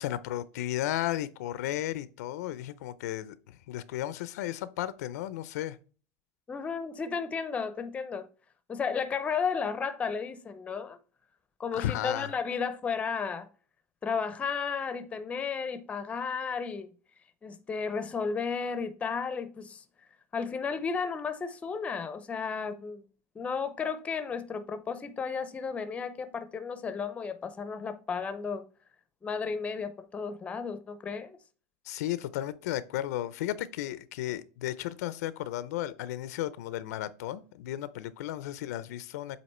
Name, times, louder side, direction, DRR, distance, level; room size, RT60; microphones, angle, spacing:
voice 1, 0.0-5.8 11.7-12.3 31.9-39.4, left 13 dB, 85° left, 0.5 m, -34 dB
voice 2, 6.5-8.3 8.7-11.0 11.6-13.5 14.0-16.9 17.4-19.8 20.3-23.0 23.3-28.7 29.2-31.4, left 5 dB, 15° left, 0.5 m, -33 dB
7.9 x 2.9 x 4.3 m
supercardioid pair, 155°, 9 cm